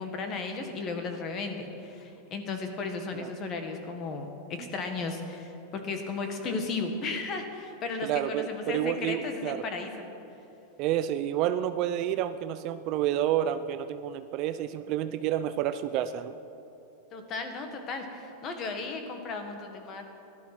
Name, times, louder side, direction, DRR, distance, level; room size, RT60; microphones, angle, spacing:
voice 1, 0.0-9.9 17.1-20.1, left 4 dB, 25° left, 5 dB, 1.5 m, -35 dB
voice 2, 8.0-9.6 10.8-16.4, right 11 dB, 40° right, 11 dB, 0.5 m, -29 dB
16.0 x 12.0 x 6.0 m, 2.8 s
supercardioid pair, 160°, 0 cm